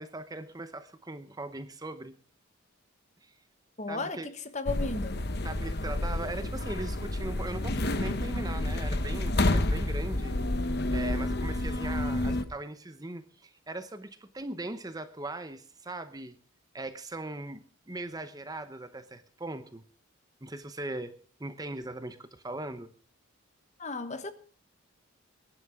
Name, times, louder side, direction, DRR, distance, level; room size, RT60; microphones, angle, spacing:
voice 1, 0.0-2.2 3.2-3.4 3.9-4.3 5.4-10.4 10.9-16.4 16.7-19.8 20.4-22.9, right 2 dB, 20° right, 0.8 m, -39 dB
voice 2, 3.8-4.2 4.5-5.3 23.8-24.3, left 3 dB, 35° left, 1.2 m, -34 dB
sound 1, 4.7-12.4, left 1 dB, 50° left, 1.0 m, -29 dB
21.0 x 11.0 x 3.6 m
head